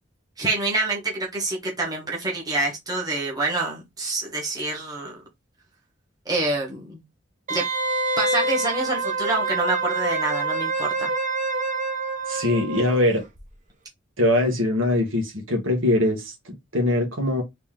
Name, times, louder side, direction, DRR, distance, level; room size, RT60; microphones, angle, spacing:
voice 1, 0.4-5.2 6.3-7.0 7.5-7.6 8.2-11.1, right 2 dB, 20° right, 1.3 m, -27 dB
Wind instrument woodwind instrument, 7.5-13.0 13.4-13.5, right 3 dB, 35° right, 1.1 m, -26 dB
voice 2, 12.3-13.2 14.2-17.4, left 1 dB, 75° right, 1.8 m, -22 dB
4.2 x 3.1 x 3.7 m
head